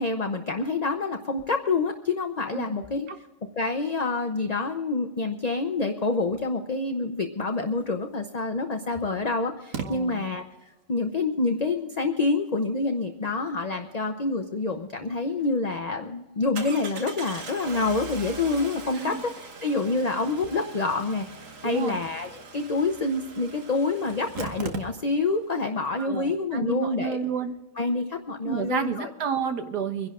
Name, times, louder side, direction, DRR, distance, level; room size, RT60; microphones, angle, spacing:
voice 1, 0.0-3.1 3.6-10.4 10.9-27.3 27.8-29.1, left 3 dB, 40° left, 5 dB, 0.6 m, -27 dB
Engine starting, 8.2-8.3 9.7-9.9 14.9-15.0 15.4-15.5 16.6-25.4 25.6-25.7 25.9-26.0, right 5 dB, 55° right, 1.7 m, -40 dB
voice 2, 9.8-10.2 19.0-19.2 21.6-22.0 26.0-27.6 28.4-30.1, right 6 dB, 80° right, 7 dB, 1.9 m, -30 dB
25.0 x 11.0 x 3.7 m, 1.1 s
omnidirectional pair, 1.7 m